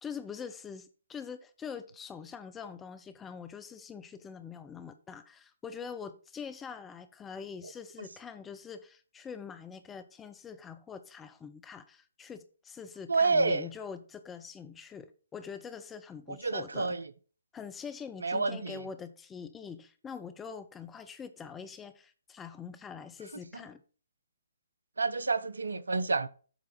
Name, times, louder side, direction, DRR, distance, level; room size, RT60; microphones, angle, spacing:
voice 1, 0.0-16.9 17.5-23.8, left 6 dB, 10° left, 0.7 m, -44 dB
voice 2, 13.1-13.7 16.4-17.1 18.2-18.9 25.0-26.3, right 3 dB, 70° right, 0.6 m, -28 dB
8.0 x 4.9 x 4.4 m
figure-of-eight pair, 130°, 0 cm